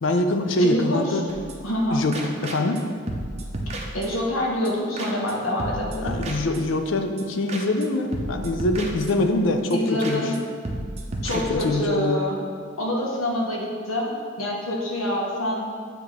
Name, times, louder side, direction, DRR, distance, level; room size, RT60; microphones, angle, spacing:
voice 1, 0.0-1.3 1.9-2.9 6.0-10.2 11.3-12.2, left 2 dB, 70° left, 6 dB, 0.5 m, -24 dB
voice 2, 0.6-1.2 1.6-2.0 3.9-6.2 9.7-10.3 11.2-12.4 12.8-15.7, left 1 dB, 90° left, -3 dB, 1.2 m, -26 dB
sound 1, 1.3-1.8 2.1-2.8 3.1-4.4 4.7-4.8 5.0-5.3 5.6-6.9 7.2-7.3 7.5-7.9 8.1-9.4 9.7-9.8 10.0-10.4 10.7-11.9, right 1 dB, 30° right, 0.5 m, -33 dB
8.8 x 3.0 x 3.7 m, 2.1 s
head